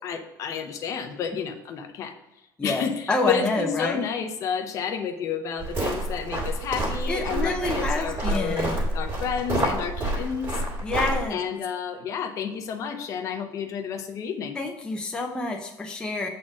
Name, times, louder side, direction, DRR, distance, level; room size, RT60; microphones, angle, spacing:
voice 1, 0.0-2.1 2.6-8.7 8.9-10.5 11.3-14.6, left 7 dB, 45° left, 6 dB, 0.8 m, -30 dB
voice 2, 3.1-4.0 7.1-8.9 10.8-11.4 14.5-16.3, left 2 dB, 10° left, 1 dB, 0.6 m, -28 dB
sound 1, 5.6-11.2, right 1 dB, 30° right, 2.2 m, -28 dB
7.5 x 4.3 x 4.8 m, 0.95 s
cardioid pair, 180°, 8 cm